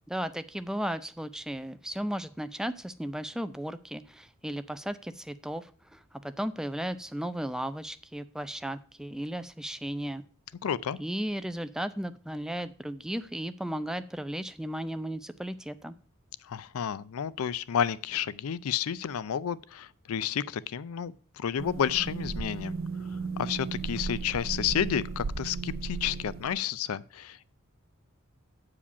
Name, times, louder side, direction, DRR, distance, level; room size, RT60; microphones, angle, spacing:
voice 1, 0.1-10.2 11.0-16.0, right 1 dB, 5° right, 0.3 m, -35 dB
voice 2, 10.6-11.0 16.5-22.7 23.4-27.5, left 8 dB, 80° left, 0.4 m, -31 dB
sound 1, 21.6-26.6, right 4 dB, 60° right, 0.5 m, -35 dB
8.5 x 4.9 x 7.0 m
head